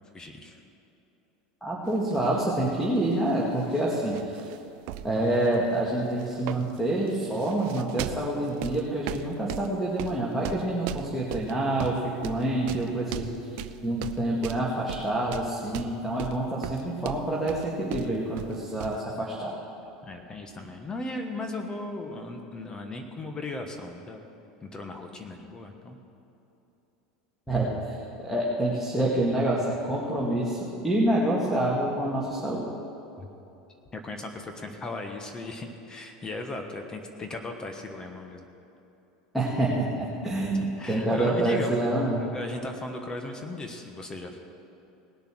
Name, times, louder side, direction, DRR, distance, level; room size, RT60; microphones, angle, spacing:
voice 1, 0.1-0.6 20.0-24.2 24.6-26.0 33.2-33.3 33.9-38.5 40.8-44.4, left 2 dB, 25° left, 4 dB, 1.3 m, -37 dB
voice 2, 1.6-4.4 5.0-12.0 12.2-13.4 13.8-19.5 27.5-28.0 28.2-30.6 30.8-32.7 39.3-42.2, right 1 dB, ahead, -5 dB, 2.2 m, -27 dB
sound 1, 1.9-2.3 2.6-3.8 4.1-4.6 4.9-5.7 6.2-19.0, right 12 dB, 65° right, 0.5 m, -38 dB
19.0 x 6.7 x 6.3 m, 2.9 s
hypercardioid pair, 100°, 3 cm